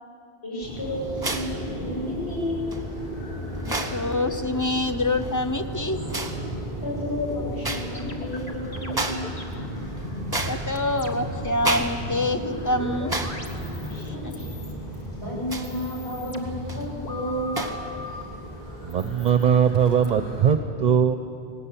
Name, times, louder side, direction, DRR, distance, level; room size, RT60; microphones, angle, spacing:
voice 1, 0.4-2.7 6.8-9.2 13.8-14.7 15.2-17.6, left 1 dB, 80° left, -6 dB, 7.4 m, -32 dB
sound 1, 0.6-20.5, equal, 60° left, 7.7 m, -35 dB
sound 2, 1.2-1.6 2.7-2.8 3.6-4.0 5.1-5.4 6.1-6.4 7.6-7.9 8.3-8.4 8.9-9.3 9.7-10.9 11.6-12.0 12.3-12.4 13.1-13.4 13.8-13.9 15.4-15.8 16.5-16.8 17.5-17.8, right 2 dB, 20° right, 1.3 m, -30 dB
voice 2, 3.7-6.0 10.5-13.2 14.2-14.3, left 2 dB, 20° left, 8 dB, 0.7 m, -26 dB
sound 3, 7.6-14.1 14.4-15.1 15.5-18.2 18.9-20.1, left 2 dB, 40° left, 1.6 m, -39 dB
voice 3, 18.8-21.2, right 8 dB, 50° right, 9 dB, 0.8 m, -20 dB
19.0 x 18.5 x 8.5 m, 2.6 s
omnidirectional pair, 1.1 m